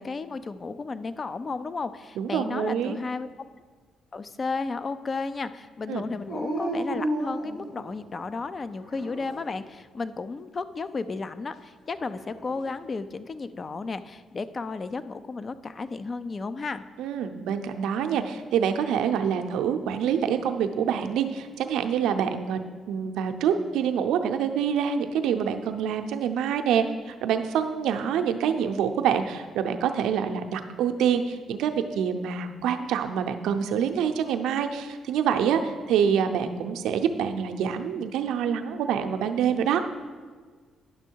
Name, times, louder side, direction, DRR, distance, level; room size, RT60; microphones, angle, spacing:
voice 1, 0.0-3.3 4.1-16.8, left 4 dB, 40° left, 12 dB, 0.5 m, -33 dB
voice 2, 2.2-3.0 5.9-6.0 17.0-22.6 22.9-39.8, right 8 dB, 80° right, 6 dB, 0.6 m, -26 dB
Dog, 6.3-8.2 8.8-9.6 11.9-12.7, right 1 dB, 80° left, 1.9 m, -33 dB
10.0 x 6.2 x 4.5 m, 1.5 s
supercardioid pair, 60°, 0 cm